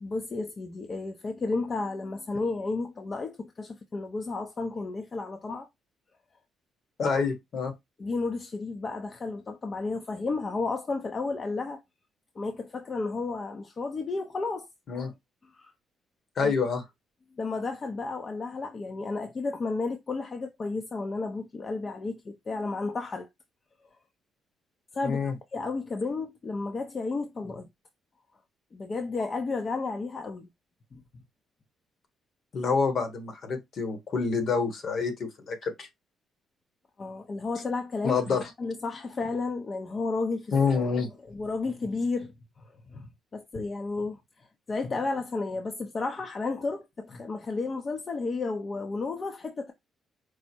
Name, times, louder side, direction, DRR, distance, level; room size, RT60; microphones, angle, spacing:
voice 1, 0.0-5.7 8.0-11.8 12.4-14.7 15.5-15.7 16.4-16.5 17.4-23.3 24.9-27.7 28.7-30.5 30.9-31.0 37.0-40.5 41.3-42.3 42.9-44.2 44.7-49.7, left 3 dB, 40° left, 0.6 m, -32 dB
voice 2, 7.0-7.7 14.9-15.1 16.4-16.8 25.0-25.3 32.5-35.9 38.0-38.5 40.5-41.1, left 5 dB, 55° left, 1.3 m, -27 dB
4.7 x 2.1 x 4.4 m
cardioid pair, 90°, 0 cm